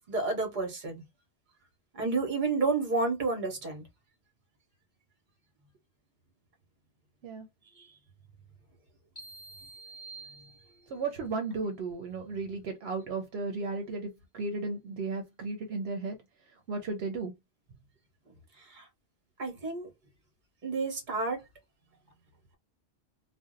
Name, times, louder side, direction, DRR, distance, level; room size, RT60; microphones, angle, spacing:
voice 1, 0.1-1.0 1.9-3.8 7.8-7.9 18.6-18.9 19.4-19.9 20.6-21.4, right 3 dB, 50° right, 1.1 m, -30 dB
sound 1, 9.2-11.1, right 3 dB, 30° left, 0.9 m, -48 dB
voice 2, 10.9-16.2 16.7-17.3, right 3 dB, 75° right, 0.9 m, -34 dB
2.6 x 2.1 x 3.7 m
omnidirectional pair, 1.1 m